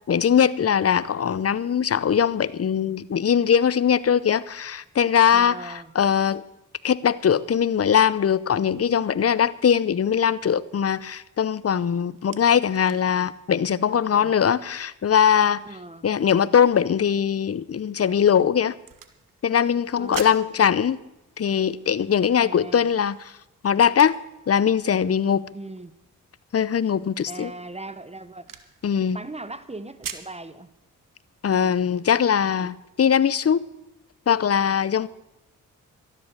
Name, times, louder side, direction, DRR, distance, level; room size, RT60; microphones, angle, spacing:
voice 1, 0.0-6.4 6.8-15.6 16.0-18.7 19.4-21.0 21.4-23.3 23.6-24.2 24.5-25.5 26.5-27.5 28.8-29.2 31.4-33.7 34.3-35.1, left 8 dB, 45° left, 0.7 m, -21 dB
voice 2, 5.3-5.9 13.8-14.3 15.6-16.1 20.0-20.3 22.4-22.9 25.5-25.9 27.3-28.5 29.0-30.7, right 2 dB, 20° right, 1.1 m, -39 dB
sound 1, 11.9-30.4, right 8 dB, 75° right, 1.2 m, -47 dB
13.0 x 11.0 x 6.5 m
cardioid pair, 50°, 33 cm